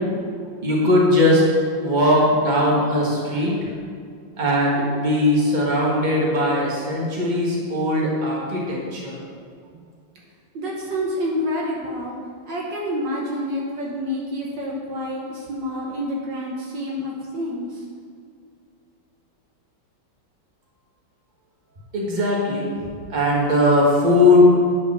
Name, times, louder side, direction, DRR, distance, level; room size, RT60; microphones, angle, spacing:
voice 1, 0.6-1.5 1.8-3.5 4.4-9.1 21.9-22.7 23.1-24.4, left 1 dB, 25° right, -4 dB, 1.8 m, -19 dB
voice 2, 10.5-12.2 12.5-17.8, equal, 65° right, -3 dB, 1.8 m, -28 dB
9.5 x 5.2 x 6.1 m, 2.2 s
omnidirectional pair, 2.1 m